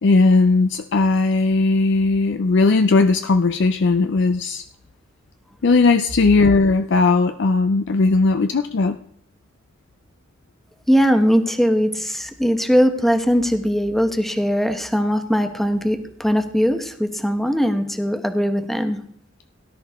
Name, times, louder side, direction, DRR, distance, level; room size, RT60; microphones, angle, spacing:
voice 1, 0.0-4.6 5.6-9.0, left 3 dB, 60° left, 0.5 m, -17 dB
voice 2, 10.9-19.0, equal, ahead, 1.0 m, -20 dB
17.5 x 11.0 x 3.6 m
head